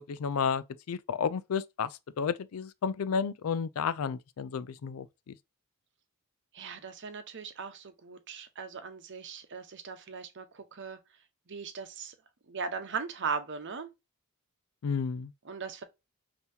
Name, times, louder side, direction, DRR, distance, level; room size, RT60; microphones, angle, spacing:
voice 1, 0.0-1.9 2.2-5.3 14.8-15.3, left 6 dB, 75° left, 0.4 m, -32 dB
voice 2, 6.5-11.0 11.5-12.1 12.5-13.9 15.4-15.8, right 5 dB, 60° right, 0.9 m, -38 dB
5.5 x 2.9 x 2.7 m
head